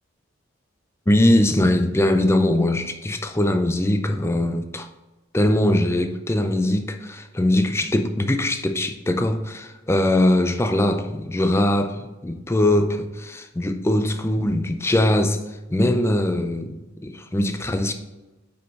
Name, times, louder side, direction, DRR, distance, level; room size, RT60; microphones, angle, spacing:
voice 1, 1.1-4.9 5.3-15.4 15.7-17.9, left 1 dB, 15° left, 0.5 m, -21 dB
5.7 x 5.3 x 4.1 m
head